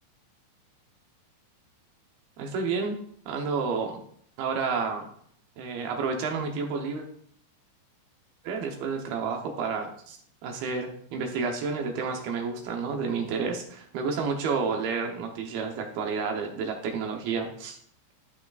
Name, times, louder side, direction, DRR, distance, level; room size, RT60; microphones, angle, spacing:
voice 1, 2.4-3.0 3.3-4.0 4.4-5.1 5.6-7.1 8.4-10.2 10.4-17.8, right 5 dB, 75° right, 3 dB, 2.4 m, -30 dB
14.0 x 5.8 x 2.4 m, 0.63 s
omnidirectional pair, 5.3 m